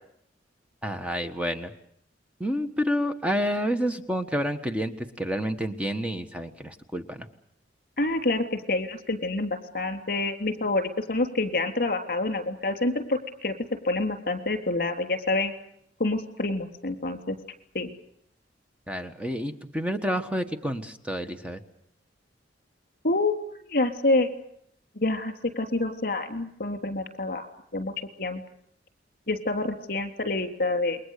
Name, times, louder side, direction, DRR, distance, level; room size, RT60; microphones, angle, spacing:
voice 1, 0.8-1.7 2.4-7.3 18.9-21.6, equal, 5° right, 7 dB, 1.3 m, -29 dB
voice 2, 8.0-13.5 13.8-15.5 16.0-17.4 17.7-17.9 23.0-23.4 23.7-24.3 24.9-27.5 27.7-27.9 28.2-28.4 29.3-31.0, left 2 dB, 50° left, 7 dB, 3.5 m, -27 dB
28.5 x 22.5 x 6.7 m, 0.71 s
head